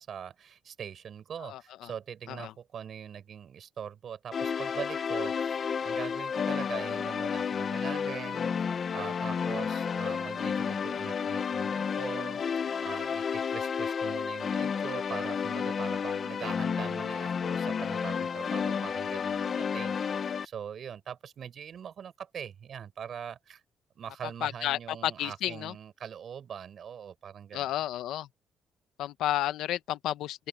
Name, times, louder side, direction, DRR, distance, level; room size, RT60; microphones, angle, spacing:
voice 1, 0.0-8.5 8.9-12.4 12.8-23.6 24.0-27.7, right 8 dB, 50° right, 5.6 m, -42 dB
sound 1, 4.3-20.5, left 6 dB, 40° left, 0.8 m, -31 dB
voice 2, 24.4-25.7 27.5-28.3 29.0-30.5, left 13 dB, 85° left, 0.9 m, -31 dB
open air
cardioid pair, 150°, 0 cm